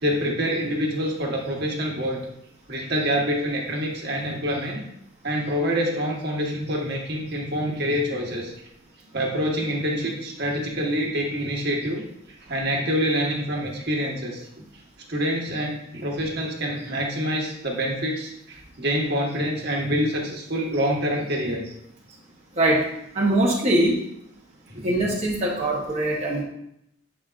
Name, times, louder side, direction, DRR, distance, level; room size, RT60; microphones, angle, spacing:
voice 1, 0.0-2.2 2.7-4.8 5.2-8.5 9.1-12.0 12.5-14.5 15.1-21.7 24.7-24.9, equal, 60° right, -1 dB, 1.3 m, -26 dB
voice 2, 23.1-24.0 24.8-26.4, right 1 dB, 35° right, -3 dB, 0.9 m, -22 dB
7.8 x 4.9 x 2.4 m, 0.78 s
head